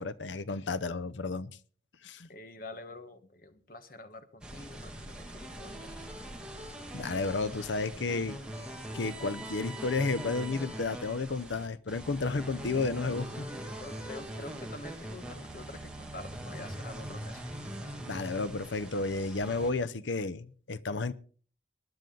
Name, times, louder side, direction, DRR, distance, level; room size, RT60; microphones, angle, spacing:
voice 1, 0.0-1.5 2.0-2.3 6.9-8.4 8.9-13.5 18.1-21.1, left 3 dB, 80° left, 0.7 m, -32 dB
voice 2, 2.3-6.0 12.2-12.5 13.5-17.6, left 2 dB, 50° left, 1.3 m, -47 dB
sound 1, 4.4-19.7, right 1 dB, 5° right, 2.2 m, -42 dB
20.0 x 11.0 x 3.9 m
head